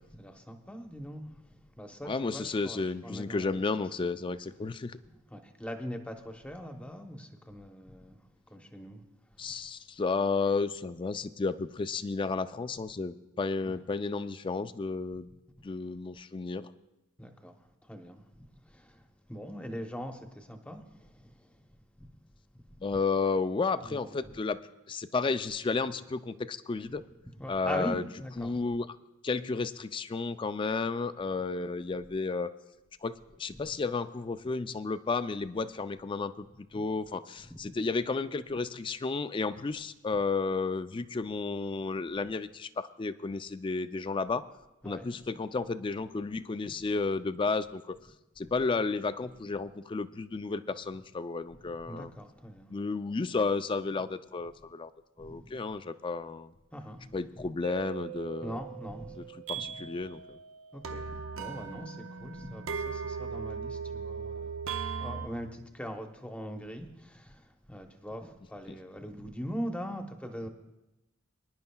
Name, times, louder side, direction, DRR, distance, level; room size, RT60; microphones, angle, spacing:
voice 1, 0.2-3.7 4.0-4.1 5.3-8.2 8.5-9.0 9.3-9.5 13.6-13.8 17.2-22.1 22.6-22.7 23.8-24.4 27.4-28.6 33.6-33.7 37.5-37.7 44.8-45.1 46.6-46.7 51.6-52.7 55.2-55.6 56.7-57.5 58.4-59.3 59.5-59.8 60.7-70.5, equal, 5° left, 4 dB, 0.8 m, -42 dB
voice 2, 2.0-5.0 9.4-15.3 15.6-16.7 22.8-24.6 24.9-27.0 27.5-28.0 28.4-28.9 29.2-32.5 33.0-36.5 36.7-44.5 44.8-48.0 48.4-52.1 52.7-54.9 55.2-56.5 57.1-58.6 59.5-60.4, left 4 dB, 25° left, 12 dB, 0.3 m, -32 dB
sound 1, 57.6-65.3, right 6 dB, 85° right, 0.7 m, -39 dB
24.5 x 10.5 x 2.3 m, 0.98 s
head